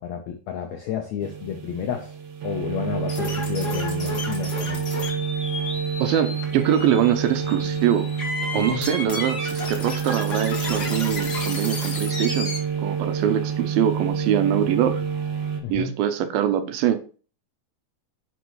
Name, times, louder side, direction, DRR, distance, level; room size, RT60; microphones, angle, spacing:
voice 1, 0.0-2.1 2.4-4.9 8.5-8.9 15.6-15.9, left 8 dB, 80° left, 1.6 m, -31 dB
sound 1, 1.2-15.6, right 7 dB, 60° right, 2.4 m, -28 dB
sound 2, 3.1-12.6, left 3 dB, 45° left, 1.4 m, -33 dB
voice 2, 6.0-8.1 8.5-12.5 12.8-15.0 15.7-17.0, right 10 dB, 80° right, 2.5 m, -23 dB
10.0 x 5.5 x 3.1 m
omnidirectional pair, 4.3 m